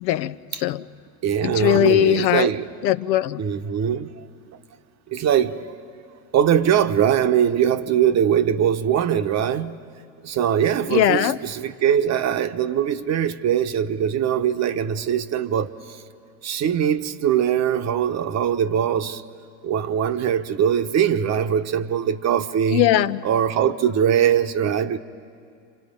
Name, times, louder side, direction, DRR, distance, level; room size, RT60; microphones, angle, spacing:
voice 1, 0.0-0.8 1.4-2.5 2.8-3.4 10.9-11.4 22.7-23.2, left 13 dB, 90° left, 0.7 m, -20 dB
voice 2, 1.2-2.7 3.4-4.2 5.1-5.7 6.3-9.8 10.2-16.0 16.4-19.2 19.6-22.9 23.2-25.0, right 9 dB, 35° right, 0.8 m, -21 dB
29.5 x 26.0 x 5.2 m
supercardioid pair, 105°, 49 cm